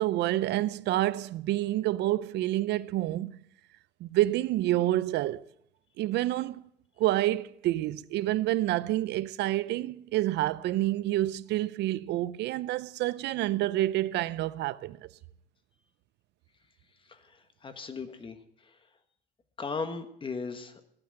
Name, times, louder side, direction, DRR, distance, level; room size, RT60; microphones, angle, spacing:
voice 1, 0.0-3.3 4.0-5.4 6.0-6.6 7.0-15.1, right 15 dB, 75° right, 0.5 m, -28 dB
voice 2, 17.6-18.4 19.6-20.8, left 4 dB, 30° left, 1.5 m, -37 dB
14.0 x 8.9 x 7.6 m
cardioid pair, 120°, 18 cm